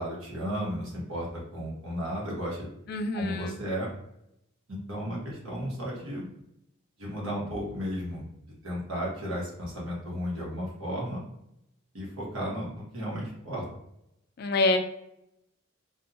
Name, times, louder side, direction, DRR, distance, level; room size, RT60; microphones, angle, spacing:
voice 1, 0.0-2.7 3.1-3.9 4.7-6.3 7.0-8.3 8.6-11.2 11.9-13.6, equal, 85° right, -4 dB, 1.1 m, -34 dB
voice 2, 2.9-3.6 14.4-14.8, left 2 dB, 50° left, 6 dB, 0.3 m, -26 dB
2.6 x 2.2 x 2.6 m, 0.81 s
head